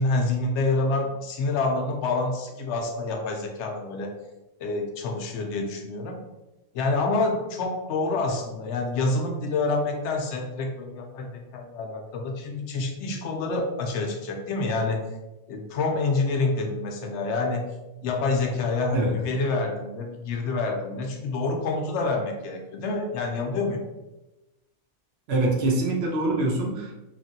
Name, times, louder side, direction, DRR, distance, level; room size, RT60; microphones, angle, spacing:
voice 1, 0.0-4.1 4.6-6.2 6.7-15.0 15.5-17.6 18.0-23.8, left 3 dB, 80° left, 2 dB, 0.9 m, -27 dB
voice 2, 25.3-27.0, right 2 dB, 70° right, -1 dB, 0.9 m, -24 dB
3.0 x 2.5 x 2.6 m, 1.0 s
omnidirectional pair, 1.1 m